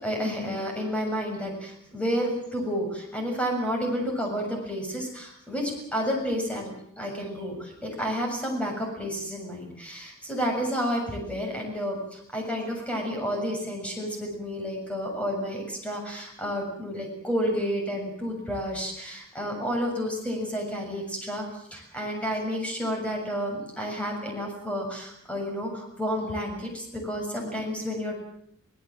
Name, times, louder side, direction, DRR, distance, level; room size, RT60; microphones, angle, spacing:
voice 1, 0.0-21.4 21.7-28.2, equal, 5° left, 1 dB, 7.1 m, -30 dB
25.0 x 18.5 x 7.7 m, 0.72 s
head